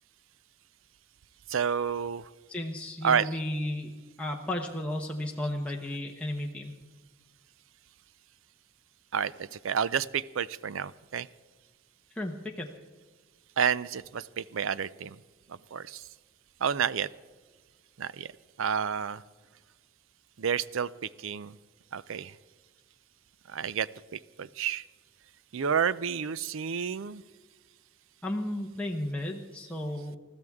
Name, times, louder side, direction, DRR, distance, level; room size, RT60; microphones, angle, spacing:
voice 1, 1.5-2.3 3.0-3.4 9.1-11.3 13.6-15.2 15.7-16.0 16.6-17.1 18.0-18.3 18.6-19.2 20.4-21.5 21.9-22.3 23.5-23.9 24.4-24.8 25.5-27.2, right 7 dB, 65° right, 18 dB, 0.5 m, -30 dB
voice 2, 2.5-3.9 4.2-6.8 12.1-12.7 28.2-30.2, left 1 dB, 5° left, 0 dB, 0.9 m, -33 dB
20.5 x 14.0 x 3.6 m, 1.4 s
head